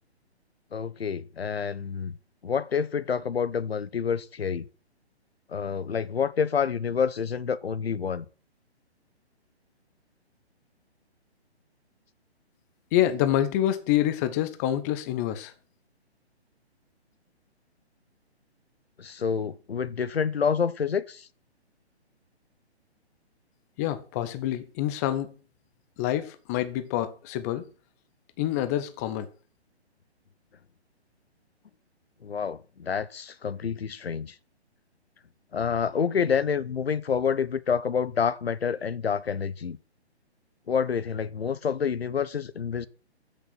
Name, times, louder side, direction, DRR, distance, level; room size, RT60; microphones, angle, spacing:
voice 1, 0.7-2.2 2.4-4.6 5.5-8.2 19.0-21.3 32.2-34.3 35.5-39.8 40.7-42.9, left 6 dB, 65° left, 1.0 m, -28 dB
voice 2, 12.9-15.5 23.8-25.3 26.0-27.6 28.4-29.3, left 12 dB, 15° left, 0.6 m, -27 dB
14.0 x 6.6 x 6.1 m
figure-of-eight pair, 135°, 33 cm